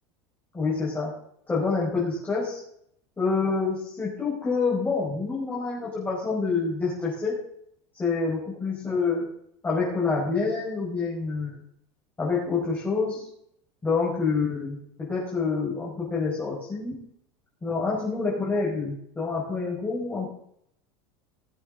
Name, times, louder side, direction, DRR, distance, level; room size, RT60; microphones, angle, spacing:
voice 1, 0.5-1.2 1.5-2.6 3.2-7.4 7.9-9.3 9.6-11.6 12.2-13.3 13.8-17.1 17.6-20.3, left 4 dB, 15° left, -6 dB, 5.3 m, -27 dB
18.5 x 7.9 x 3.9 m, 0.68 s
supercardioid pair, 125°, 14 cm